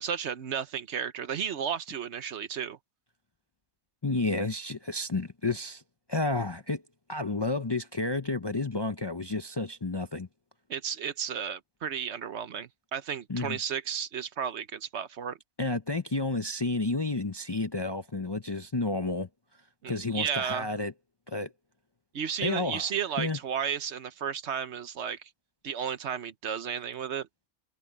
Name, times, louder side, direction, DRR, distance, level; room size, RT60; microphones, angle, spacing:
voice 1, 0.0-2.8 10.7-15.4 19.8-20.7 22.1-25.3 25.6-27.3, right 8 dB, 55° right, 1.0 m, -33 dB
voice 2, 4.0-5.8 6.1-6.8 7.1-10.3 13.3-13.6 15.6-19.3 19.9-20.9 21.3-21.5 22.4-22.9 23.2-23.4, left 2 dB, 40° left, 0.3 m, -31 dB
omnidirectional pair, 1.5 m